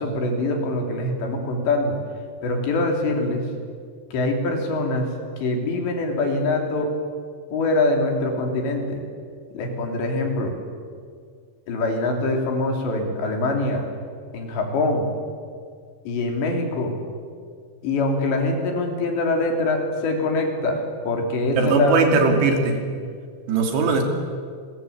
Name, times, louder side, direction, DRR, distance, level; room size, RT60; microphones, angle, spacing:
voice 1, 0.0-2.0 2.4-3.4 4.1-5.1 5.4-6.9 7.5-9.0 9.5-10.5 11.7-13.9 14.3-15.1 16.1-17.0 17.8-22.1, left 2 dB, 85° left, 3 dB, 5.8 m, -24 dB
voice 2, 21.5-22.8 23.5-24.0, right 4 dB, 75° right, 3 dB, 5.0 m, -19 dB
29.5 x 22.0 x 8.8 m, 2.1 s
omnidirectional pair, 5.0 m